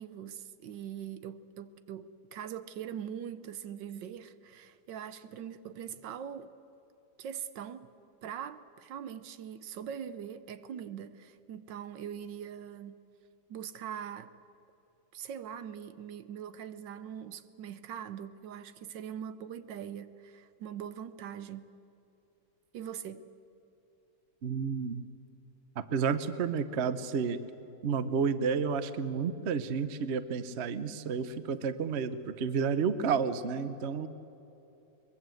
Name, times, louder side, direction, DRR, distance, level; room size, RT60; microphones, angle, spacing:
voice 1, 0.0-6.5 7.2-8.0 8.2-13.0 13.5-14.3 15.1-21.7 22.7-23.2, right 9 dB, 70° right, 1.4 m, -42 dB
voice 2, 24.4-25.0 25.9-27.4 27.8-34.1, right 6 dB, 50° right, 0.8 m, -31 dB
23.0 x 21.5 x 7.8 m
omnidirectional pair, 2.2 m